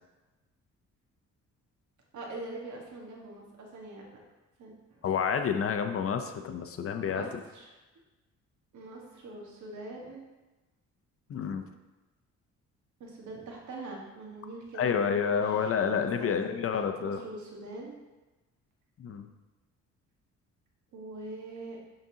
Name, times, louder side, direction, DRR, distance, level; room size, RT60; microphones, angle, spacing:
voice 1, 2.1-4.0 4.6-5.0 7.1-7.7 8.7-10.3 13.0-16.4 17.0-18.0 20.9-21.8, right 2 dB, 75° right, -1 dB, 1.5 m, -43 dB
voice 2, 5.0-7.2 11.3-11.6 14.7-17.2 19.0-19.3, left 7 dB, 50° left, 7 dB, 0.6 m, -29 dB
10.5 x 3.9 x 2.8 m, 1.1 s
cardioid pair, 90°, 30 cm